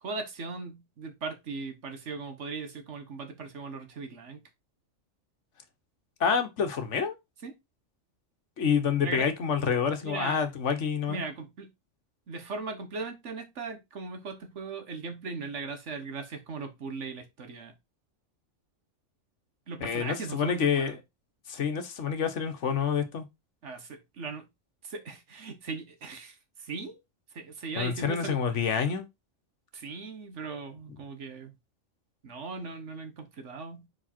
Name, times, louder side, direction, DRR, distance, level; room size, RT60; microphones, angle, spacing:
voice 1, 0.0-4.4 7.4-7.5 9.0-9.3 10.0-10.5 11.1-11.7 12.3-17.7 19.7-21.0 23.6-24.5 24.8-27.0 27.3-28.4 29.7-31.5 32.2-33.9, right 4 dB, 65° right, 1.5 m, -38 dB
voice 2, 6.2-7.2 8.6-11.2 19.8-20.9 21.5-23.3 27.8-29.0, left 6 dB, 65° left, 1.3 m, -28 dB
5.1 x 4.8 x 4.3 m
omnidirectional pair, 1.3 m